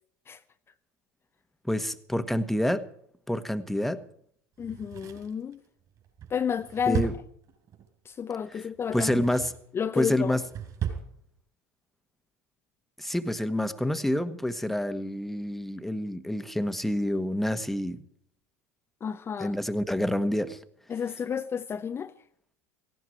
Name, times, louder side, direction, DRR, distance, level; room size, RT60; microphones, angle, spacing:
voice 1, 1.7-2.8 3.3-4.0 6.9-7.1 8.5-8.6 8.9-9.5 9.9-10.4 13.0-18.0 19.4-20.6, left 1 dB, ahead, 1.4 m, -28 dB
voice 2, 4.6-5.6 6.3-7.1 8.0-9.2 9.7-10.3 19.0-19.5 20.9-22.1, left 7 dB, 30° left, 0.8 m, -31 dB
Drawer open or close, 4.6-7.9 8.8-9.7 10.1-11.1 11.4-11.5, right 9 dB, 45° right, 5.1 m, -36 dB
18.0 x 16.5 x 4.6 m
hypercardioid pair, 80°, 9 cm